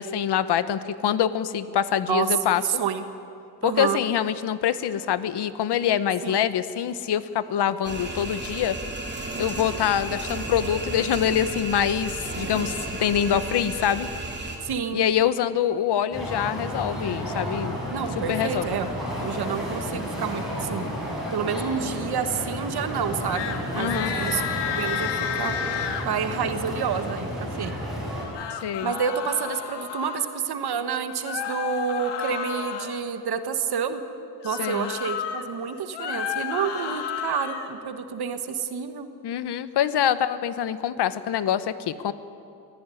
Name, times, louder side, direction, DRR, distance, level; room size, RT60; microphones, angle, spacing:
voice 1, 0.0-2.6 3.6-8.8 9.4-12.7 13.0-14.1 14.9-17.8 18.3-18.7 23.7-24.1 28.6-28.9 34.6-34.9 39.2-42.1, left 9 dB, 75° left, 14 dB, 1.1 m, -25 dB
voice 2, 2.6-3.1 3.6-4.0 6.2-6.4 14.6-15.0 17.9-18.9 19.2-20.8 21.3-25.6 26.0-27.7 28.8-34.0 34.4-39.1, right 7 dB, 65° right, 9 dB, 1.5 m, -29 dB
sound 1, 7.8-14.6, right 2 dB, 25° right, 3.2 m, -33 dB
sound 2, 16.1-28.3, equal, ahead, 7.2 m, -32 dB
sound 3, 23.3-23.6 23.8-26.1 28.1-30.3 31.2-33.0 34.4-35.4 35.8-37.7, left 8 dB, 90° left, 1.9 m, -31 dB
23.0 x 15.0 x 9.8 m, 2.6 s
wide cardioid pair, 140°, 41 cm